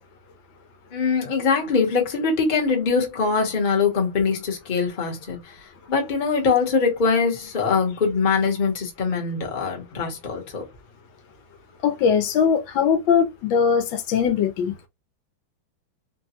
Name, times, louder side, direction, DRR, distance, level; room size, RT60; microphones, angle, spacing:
voice 1, 0.9-5.5 5.9-10.6, left 5 dB, 35° left, 0.9 m, -22 dB
voice 2, 11.8-14.7, left 7 dB, 80° left, 1.4 m, -20 dB
3.7 x 2.2 x 2.8 m
omnidirectional pair, 2.1 m